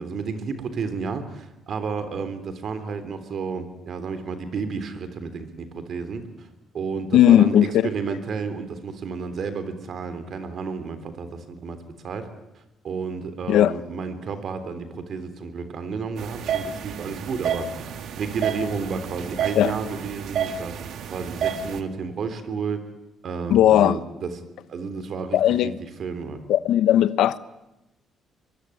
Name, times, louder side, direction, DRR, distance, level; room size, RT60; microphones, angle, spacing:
voice 1, 0.0-6.5 6.7-11.8 12.0-12.3 12.8-22.9 23.2-24.4 24.7-25.7 26.0-26.4, right 5 dB, 55° right, 10 dB, 3.4 m, -31 dB
voice 2, 7.1-7.7 13.5-13.7 19.6-19.7 23.5-24.0 25.3-25.8 26.5-27.4, left 11 dB, 80° left, 15 dB, 1.0 m, -17 dB
sound 1, 16.2-21.8, right 7 dB, 70° right, 2.2 m, -30 dB
23.5 x 22.5 x 9.9 m, 0.93 s
cardioid pair, 120°, 0 cm